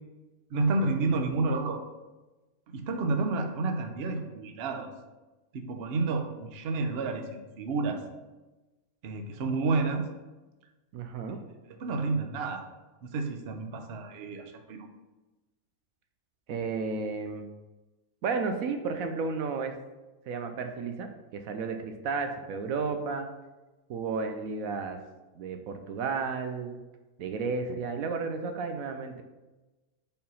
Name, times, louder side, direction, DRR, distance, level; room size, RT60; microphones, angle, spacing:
voice 1, 0.5-1.8 2.7-4.9 5.5-8.0 9.0-10.1 11.7-12.6 13.0-14.9, right 3 dB, 55° right, 5 dB, 0.8 m, -30 dB
voice 2, 10.9-11.4 16.5-17.5 18.2-19.7 20.3-23.3 23.9-25.0 25.4-26.8 27.2-29.2, right 4 dB, 75° right, 6 dB, 1.0 m, -32 dB
5.6 x 4.4 x 5.4 m, 1.1 s
omnidirectional pair, 1.5 m